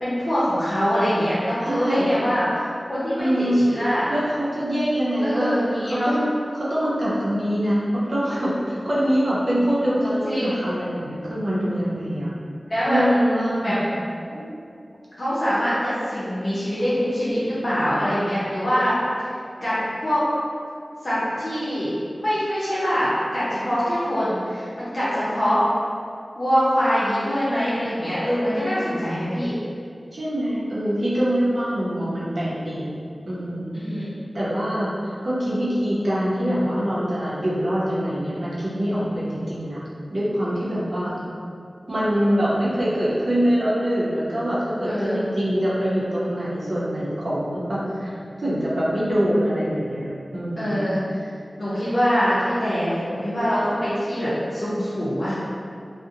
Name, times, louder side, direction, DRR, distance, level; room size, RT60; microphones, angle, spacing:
voice 1, 0.0-2.6 2.9-4.1 5.2-6.1 10.2-10.5 12.7-13.0 13.6-13.8 15.2-19.0 19.6-20.2 21.0-25.6 26.4-29.5 33.7-34.4 44.8-45.2 50.6-51.3 51.6-55.4, equal, 55° left, -12 dB, 0.6 m, -24 dB
voice 2, 1.6-2.2 3.2-3.6 4.1-6.3 6.5-12.3 12.9-13.8 14.3-14.5 30.1-33.0 33.3-33.8 34.3-34.9 35.2-39.8 40.1-41.1 41.9-50.8, equal, 70° right, -8 dB, 0.6 m, -24 dB
2.6 x 2.0 x 2.5 m, 2.3 s
wide cardioid pair, 60°, 0 cm